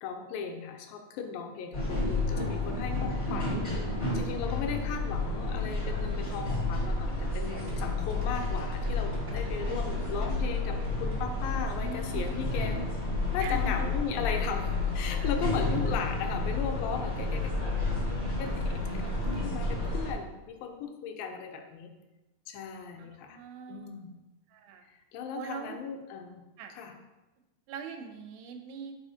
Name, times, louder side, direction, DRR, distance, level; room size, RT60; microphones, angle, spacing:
voice 1, 0.0-3.8 4.1-12.8 13.3-17.5 18.4-18.5 19.3-21.9 22.5-23.4 23.7-24.1 24.8-26.4 26.8-27.0, left 6 dB, 80° left, 5 dB, 2.3 m, -37 dB
sound 1, 1.7-20.1, left 2 dB, 65° left, 0.7 m, -31 dB
sound 2, 7.6-12.6 12.9-13.0, right 2 dB, 70° right, 0.9 m, -50 dB
voice 2, 9.3-10.3 11.7-12.3 13.4-13.7 23.0-24.2 24.5-24.9 25.4-25.8 26.6-26.8 27.7-28.9, right 6 dB, 85° right, 4 dB, 2.3 m, -43 dB
8.2 x 4.2 x 2.7 m, 1.0 s
omnidirectional pair, 4.1 m